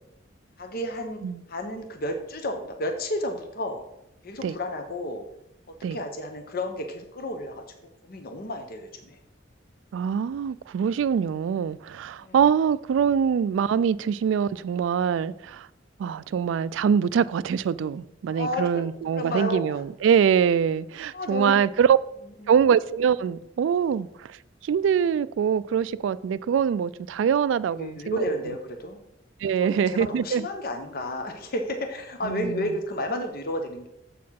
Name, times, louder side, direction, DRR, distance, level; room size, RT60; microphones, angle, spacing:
voice 1, 0.6-1.2 1.5-3.8 4.2-5.2 5.9-7.6 8.0-9.2 12.2-12.4 18.3-18.8 19.1-19.8 21.1-21.6 22.4-22.6 27.8-29.0 29.6-33.9, left 1 dB, 55° left, 0.9 m, -32 dB
voice 2, 9.9-15.7 16.0-22.0 22.5-24.3 24.6-28.3 29.4-30.4 32.2-32.7, right 7 dB, 90° right, 0.3 m, -24 dB
7.4 x 4.3 x 5.7 m
head